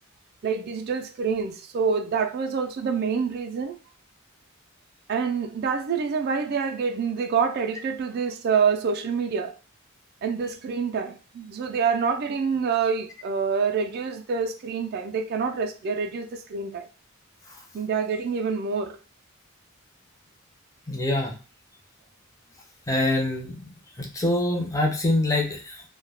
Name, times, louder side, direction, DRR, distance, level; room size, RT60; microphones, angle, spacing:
voice 1, 0.4-3.8 5.1-9.5 10.2-16.9 17.7-19.0, right 6 dB, 50° right, 0.3 m, -26 dB
voice 2, 20.9-21.4 22.9-23.6 24.0-25.8, left 2 dB, 15° left, 0.5 m, -25 dB
2.1 x 2.1 x 3.3 m
head